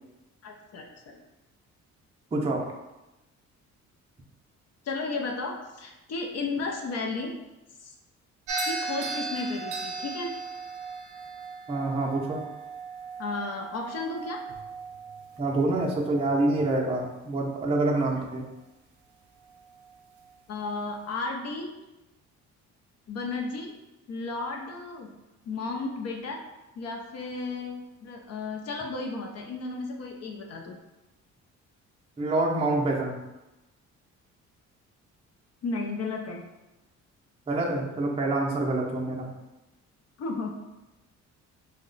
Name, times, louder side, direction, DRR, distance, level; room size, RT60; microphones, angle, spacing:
voice 1, 0.4-1.2 4.8-7.3 7.8-7.9 8.6-10.3 13.2-14.4 20.5-21.7 23.1-23.7 24.1-25.1 25.4-26.4 26.8-30.8 35.6-36.4 40.2-40.5, left 3 dB, 55° left, 2 dB, 0.5 m, -33 dB
voice 2, 2.3-2.7 11.7-12.4 15.4-18.4 32.2-33.2 37.5-39.3, right 2 dB, 20° right, -2 dB, 0.5 m, -26 dB
sound 1, 8.5-16.8, right 4 dB, 70° right, 0.6 m, -37 dB
3.0 x 2.1 x 3.8 m, 1.0 s
cardioid pair, 90°, 30 cm